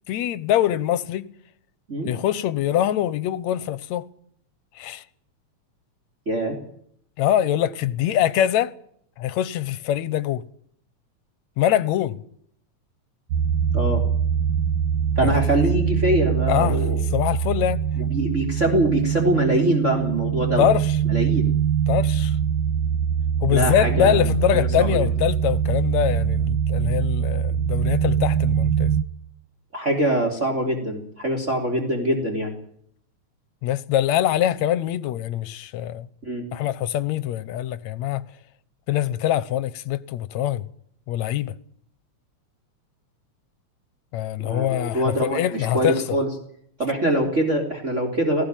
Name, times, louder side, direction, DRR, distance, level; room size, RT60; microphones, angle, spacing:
voice 1, 0.1-1.2 2.0-4.1 4.8-5.0 7.2-8.7 9.2-10.4 11.6-12.2 15.2-15.4 16.5-17.8 20.6-21.0 21.9-22.4 23.4-28.9 33.6-36.1 36.5-38.3 38.9-40.7 41.1-41.5 44.1-46.2, left 11 dB, 75° left, 2.2 m, -23 dB
sound 1, 13.3-29.0, right 8 dB, 60° right, 1.4 m, -23 dB
voice 2, 15.2-17.0 18.0-20.7 21.1-21.5 23.5-24.2 24.5-25.1 29.7-32.5 36.2-36.5 44.4-46.3 46.8-48.4, right 1 dB, 25° right, 3.7 m, -23 dB
19.0 x 17.5 x 9.1 m
omnidirectional pair, 3.4 m